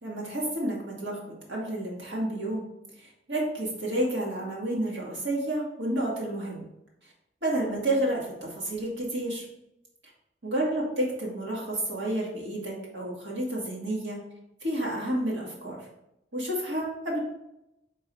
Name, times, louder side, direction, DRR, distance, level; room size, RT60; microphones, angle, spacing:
voice 1, 0.0-2.6 3.0-6.6 7.0-7.1 7.4-9.5 10.4-14.2 14.6-15.9 16.3-17.2, right 1 dB, 70° right, -4 dB, 2.0 m, -30 dB
4.8 x 3.9 x 5.3 m, 0.87 s
head